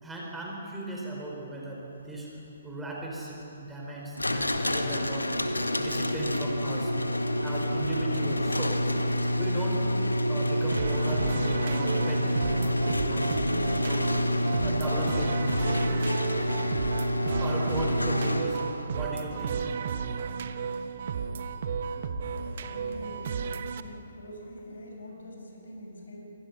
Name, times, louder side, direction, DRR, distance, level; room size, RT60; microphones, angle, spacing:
voice 1, 0.0-2.3 2.6-5.3 5.8-6.9 7.4-8.8 9.4-9.9 10.3-14.1 14.6-15.4 17.4-19.7, right 1 dB, 5° right, -3 dB, 4.4 m, -37 dB
sound 1, 4.2-18.9, equal, 80° left, 1.6 m, -27 dB
sound 2, 10.7-23.8, right 6 dB, 45° right, 1.1 m, -34 dB
voice 2, 22.4-23.5 23.7-26.2, equal, 60° left, 1 dB, 6.7 m, -43 dB
28.5 x 24.0 x 6.0 m, 2.9 s
figure-of-eight pair, 130°, 0 cm